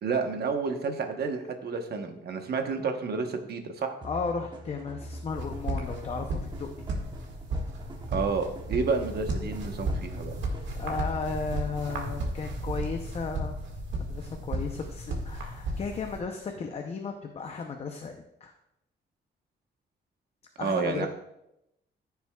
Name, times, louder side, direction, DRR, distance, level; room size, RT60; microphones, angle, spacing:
voice 1, 0.0-4.0 8.1-10.3 20.6-21.1, right 5 dB, 60° right, 5 dB, 1.0 m, -30 dB
voice 2, 4.0-6.7 10.8-13.6 14.1-18.2 18.4-18.5 20.6-21.1, left 5 dB, 35° left, 4 dB, 0.6 m, -34 dB
sound 1, 4.0-12.5, equal, 25° right, 1.0 m, -44 dB
sound 2, 5.3-16.2, right 1 dB, 85° right, 1.8 m, -34 dB
14.5 x 6.9 x 2.3 m, 0.84 s
wide cardioid pair, 165°, 18 cm